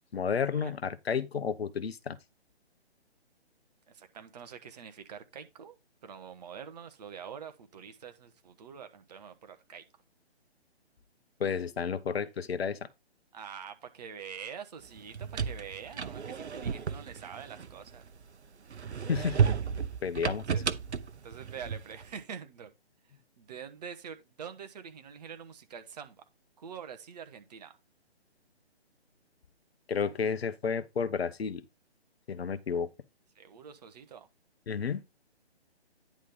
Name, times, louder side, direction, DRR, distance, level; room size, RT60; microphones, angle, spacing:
voice 1, 0.1-2.2 11.4-12.8 19.1-19.4 20.0-20.6 29.9-31.6 32.3-32.9 34.7-35.0, left 6 dB, 65° left, 0.9 m, -31 dB
voice 2, 3.9-5.7 6.0-9.8 13.3-18.0 20.5-20.6 21.2-22.7 23.4-26.2 26.6-27.8 33.3-34.3, right 7 dB, 40° right, 1.2 m, -45 dB
sound 1, 15.0-18.2 18.7-22.1, right 6 dB, 80° right, 0.8 m, -32 dB
9.9 x 3.5 x 5.6 m
figure-of-eight pair, 145°, 33 cm